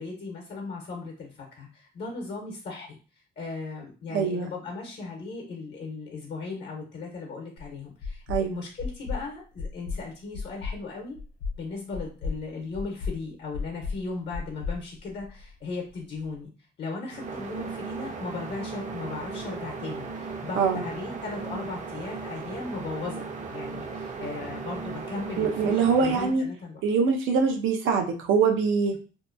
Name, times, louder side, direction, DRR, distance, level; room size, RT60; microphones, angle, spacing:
voice 1, 0.0-3.0 3.4-11.2 11.6-16.5 16.8-23.2 23.5-26.8, left 3 dB, 60° left, 0 dB, 0.9 m, -37 dB
voice 2, 4.1-4.5 8.3-8.6 20.6-20.8 25.4-26.4 26.8-28.9, right 5 dB, 80° right, 4 dB, 0.6 m, -23 dB
sound 1, 7.6-7.7 8.0-8.4 8.8-9.2 9.6-10.0 10.3-10.8 11.2-11.6 11.9-12.4 12.7-13.2 13.5-14.0 14.3-15.5, left 4 dB, 85° left, 0.5 m, -33 dB
sound 2, 17.1-26.4, right 4 dB, 40° right, 0.5 m, -36 dB
2.7 x 2.2 x 2.5 m, 0.36 s
cardioid pair, 90°, 20 cm